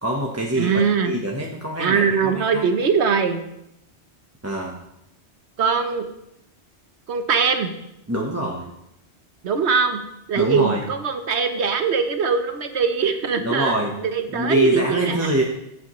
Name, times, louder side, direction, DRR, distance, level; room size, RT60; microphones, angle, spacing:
voice 1, 0.0-2.6 4.4-4.8 8.1-8.7 10.4-10.8 13.4-13.9 14.3-15.4, right 1 dB, 15° right, -2 dB, 1.0 m, -24 dB
voice 2, 0.5-1.1 1.8-3.4 5.6-6.1 7.1-7.7 9.4-10.0 10.3-15.4, right 6 dB, 75° right, 7 dB, 1.3 m, -22 dB
15.0 x 8.4 x 3.1 m, 0.81 s
omnidirectional pair, 1.1 m